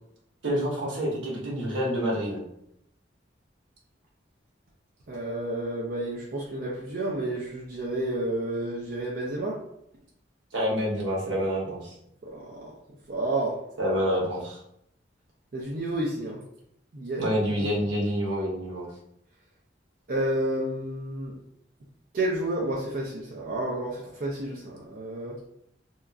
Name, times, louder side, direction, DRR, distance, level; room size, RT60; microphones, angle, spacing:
voice 1, 0.4-2.4 10.5-11.9 13.8-14.6 17.2-18.9, equal, 80° right, -3 dB, 1.0 m, -27 dB
voice 2, 5.1-9.6 12.2-12.7 13.1-13.7 15.5-16.4 16.9-17.3 17.6-17.7 20.1-21.3 22.1-25.4, right 1 dB, 50° right, -4 dB, 0.4 m, -30 dB
2.8 x 2.3 x 2.4 m, 0.74 s
head